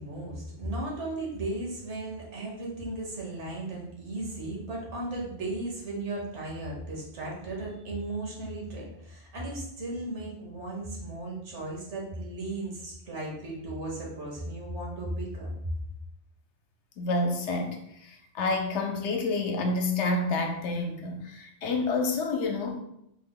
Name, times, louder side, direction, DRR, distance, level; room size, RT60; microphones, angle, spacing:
voice 1, 0.0-15.5, right 2 dB, 85° right, -2 dB, 1.3 m, -36 dB
voice 2, 17.0-22.8, left 3 dB, 85° left, 3 dB, 0.9 m, -29 dB
3.4 x 2.1 x 3.7 m, 0.76 s
omnidirectional pair, 1.2 m